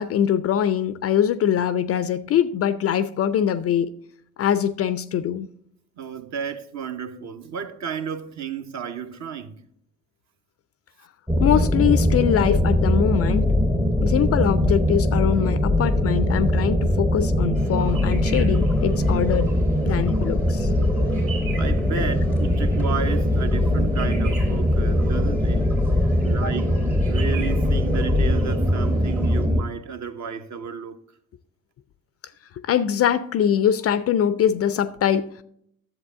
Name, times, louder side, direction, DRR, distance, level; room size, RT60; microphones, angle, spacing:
voice 1, 0.0-3.9 4.4-5.5 11.4-13.5 14.0-19.5 19.9-20.7 32.6-35.4, left 9 dB, 35° left, 0.4 m, -23 dB
voice 2, 6.0-9.7 21.5-31.0, right 7 dB, 45° right, 0.9 m, -33 dB
sound 1, 11.3-29.6, left 1 dB, 5° right, 0.7 m, -21 dB
sound 2, 17.5-29.5, right 4 dB, 85° right, 2.6 m, -40 dB
11.0 x 7.3 x 3.6 m
figure-of-eight pair, 55°, 41 cm